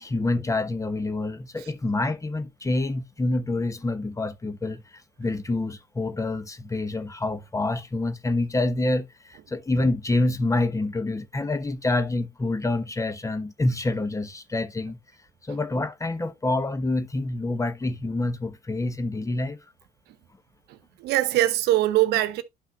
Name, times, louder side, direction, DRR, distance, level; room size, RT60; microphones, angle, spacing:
voice 1, 0.0-15.0 15.4-19.6, left 2 dB, 15° left, 1.1 m, -27 dB
voice 2, 20.7-22.4, right 15 dB, 55° right, 1.1 m, -23 dB
11.5 x 5.8 x 2.4 m
figure-of-eight pair, 55°, 20 cm